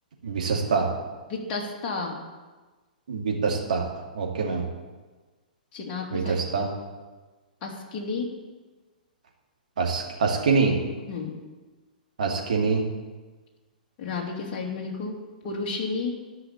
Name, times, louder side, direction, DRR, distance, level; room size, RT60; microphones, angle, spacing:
voice 1, 0.2-0.9 3.1-3.9 4.1-4.6 6.1-6.7 9.8-10.8 12.2-12.8, right 4 dB, 60° right, 0 dB, 2.5 m, -25 dB
voice 2, 1.3-2.2 5.7-6.4 7.6-8.3 11.1-11.4 14.0-15.2 15.4-16.1, left 4 dB, 35° left, -1 dB, 2.6 m, -31 dB
11.0 x 5.9 x 8.8 m, 1.3 s
figure-of-eight pair, 110°, 5 cm